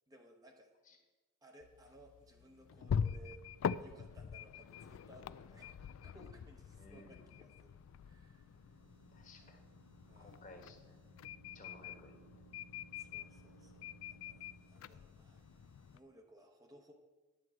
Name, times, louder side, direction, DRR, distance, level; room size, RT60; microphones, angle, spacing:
voice 1, 0.1-1.0 1.4-3.4 3.8-8.8 9.4-9.6 10.1-10.4 12.9-16.9, equal, 20° right, 3 dB, 0.8 m, -61 dB
sound 1, 1.6-16.0, left 7 dB, 80° left, 0.3 m, -44 dB
sound 2, 2.1-16.0, right 7 dB, 85° right, 1.7 m, -66 dB
voice 2, 6.7-7.2 9.1-9.6 10.2-11.0 11.5-12.2, left 2 dB, 40° left, 4 dB, 1.3 m, -57 dB
10.0 x 4.6 x 7.4 m, 1.2 s
head